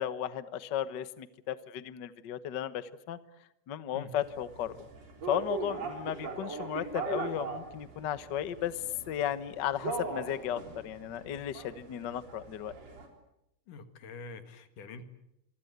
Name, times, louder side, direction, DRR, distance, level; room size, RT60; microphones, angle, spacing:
voice 1, 0.0-3.2 3.7-4.8 5.3-12.7, left 10 dB, 55° left, 13 dB, 1.2 m, -35 dB
sound 1, 4.2-13.1, right 4 dB, 55° right, 4.9 m, -40 dB
voice 2, 13.7-15.0, left 3 dB, 85° left, 9 dB, 3.5 m, -45 dB
27.0 x 24.0 x 8.1 m, 0.81 s
omnidirectional pair, 3.5 m